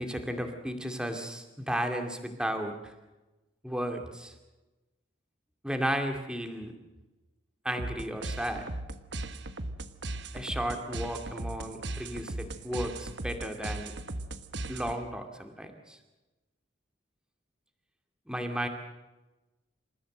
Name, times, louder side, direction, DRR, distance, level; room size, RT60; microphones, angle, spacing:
voice 1, 0.0-2.9 3.6-4.3 5.6-6.7 7.6-8.7 10.3-13.9 14.7-16.0 18.3-18.7, equal, 5° right, 5 dB, 2.4 m, -34 dB
sound 1, 7.8-15.2, right 2 dB, 60° right, 1.3 m, -38 dB
27.5 x 15.0 x 7.8 m, 1.1 s
head